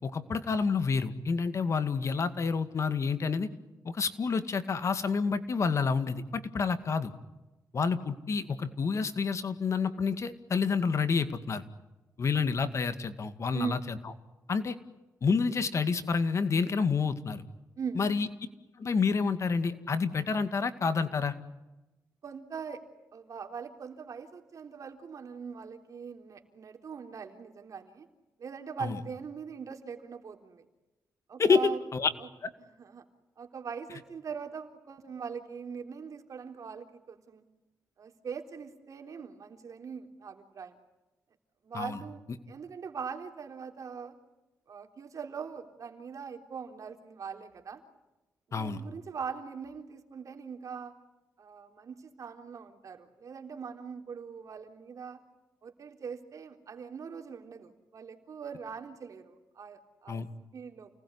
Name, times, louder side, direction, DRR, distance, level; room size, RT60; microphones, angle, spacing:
voice 1, 0.0-3.5 3.8-7.1 7.7-11.6 12.2-13.8 14.5-14.8 15.2-17.4 18.0-18.3 18.8-21.3 28.8-29.0 31.4-32.1 32.4-32.5 41.7-42.0 48.5-48.8 60.1-60.3, left 5 dB, 50° left, 11 dB, 2.2 m, -28 dB
voice 2, 22.2-22.8 23.1-28.1 28.4-30.6 31.3-31.8 32.2-32.3 32.6-33.0 33.4-37.4 38.0-40.7 41.6-42.2 42.5-44.1 44.7-47.8 48.5-50.9 51.4-55.2 55.6-60.2 60.5-60.9, right 6 dB, 60° right, 5 dB, 3.7 m, -41 dB
29.5 x 19.5 x 9.8 m, 1.1 s
cardioid pair, 95°, 7 cm